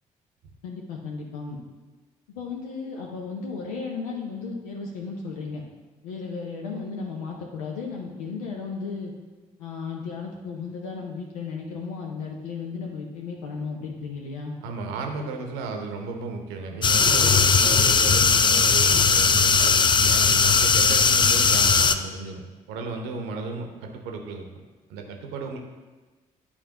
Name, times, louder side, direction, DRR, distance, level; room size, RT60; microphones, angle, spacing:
voice 1, 0.6-1.6 2.3-5.6 6.0-9.1 9.6-14.6, left 4 dB, 75° left, -1 dB, 0.6 m, -34 dB
voice 2, 14.6-24.5 24.9-25.6, right 3 dB, 65° right, 3 dB, 0.8 m, -34 dB
sound 1, 16.8-21.9, left 5 dB, 25° left, 0.4 m, -18 dB
9.8 x 4.2 x 2.9 m, 1.3 s
figure-of-eight pair, 40°, 18 cm